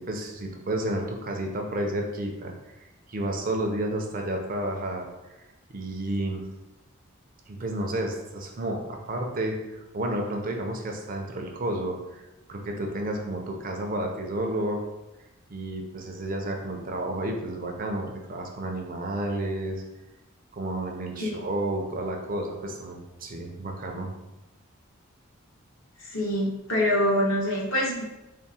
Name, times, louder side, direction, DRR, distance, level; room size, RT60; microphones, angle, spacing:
voice 1, 0.0-5.1 5.7-6.4 7.5-14.8 15.5-19.8 20.5-24.1, right 1 dB, 40° right, 2 dB, 0.5 m, -31 dB
voice 2, 26.0-28.0, left 1 dB, 70° left, -4 dB, 1.1 m, -25 dB
3.5 x 2.1 x 4.1 m, 0.97 s
head